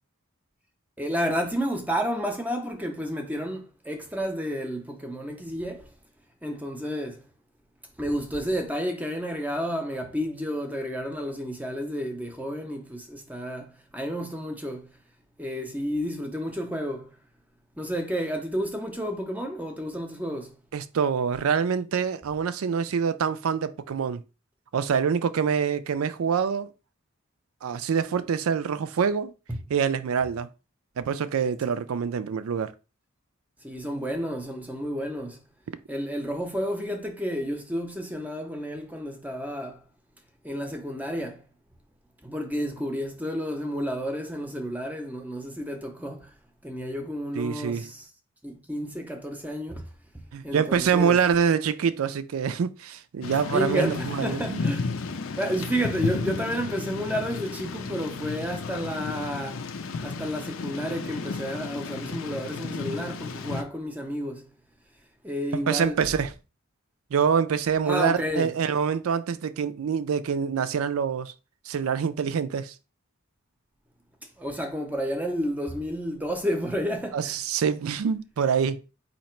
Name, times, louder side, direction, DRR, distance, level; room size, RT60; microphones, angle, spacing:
voice 1, 1.0-5.9 6.4-7.2 8.0-14.9 15.4-17.1 17.8-20.5 29.5-29.6 33.6-35.4 35.9-39.8 40.4-41.4 42.2-46.3 46.6-48.0 48.4-49.8 50.4-51.2 53.5-54.9 55.4-59.6 60.0-64.5 65.2-66.0 67.9-68.5 74.4-77.4, equal, 5° right, 0.6 m, -31 dB
voice 2, 20.7-24.2 24.7-26.7 27.6-29.3 29.7-30.5 31.0-32.7 47.4-47.9 50.3-54.7 65.5-66.3 67.1-71.3 71.7-72.7 77.1-78.8, right 6 dB, 75° right, 0.4 m, -25 dB
Thunder / Rain, 53.2-63.6, left 4 dB, 65° left, 0.5 m, -33 dB
4.1 x 2.8 x 4.4 m
head